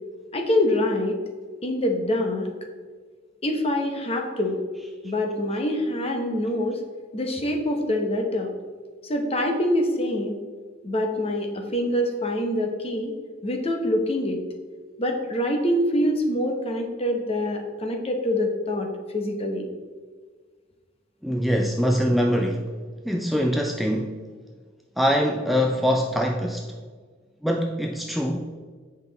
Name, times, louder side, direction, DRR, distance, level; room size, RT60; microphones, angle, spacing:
voice 1, 0.3-1.2 1.6-2.5 3.4-4.6 5.0-6.8 7.1-8.5 9.0-10.4 10.8-13.1 13.4-14.4 15.0-18.9 19.1-19.7, left 1 dB, 30° left, 3 dB, 1.0 m, -25 dB
voice 2, 21.2-22.7 23.0-24.2 25.0-26.8 27.4-28.6, equal, ahead, 2 dB, 0.3 m, -23 dB
8.1 x 5.4 x 4.0 m, 1.5 s
head